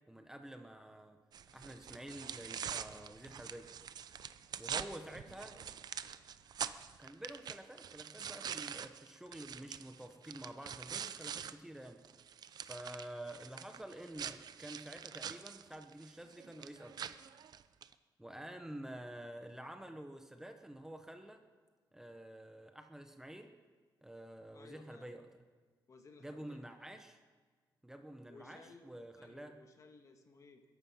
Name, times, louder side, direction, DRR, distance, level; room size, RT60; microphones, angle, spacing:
voice 1, 0.1-1.2 1.5-3.7 4.6-5.6 7.0-12.0 12.6-17.1 18.2-21.4 21.9-23.5 24.0-25.2 26.2-27.2 27.8-29.6, right 1 dB, 5° right, 6 dB, 0.9 m, -49 dB
sound 1, 1.3-11.5 11.9-17.9, right 8 dB, 60° right, 0.6 m, -45 dB
voice 2, 5.1-5.7 18.3-18.5 24.5-25.1 25.9-26.6 28.3-30.6, left 3 dB, 40° left, 5 dB, 1.7 m, -59 dB
22.0 x 11.5 x 5.6 m, 1.5 s
wide cardioid pair, 145°, 8 cm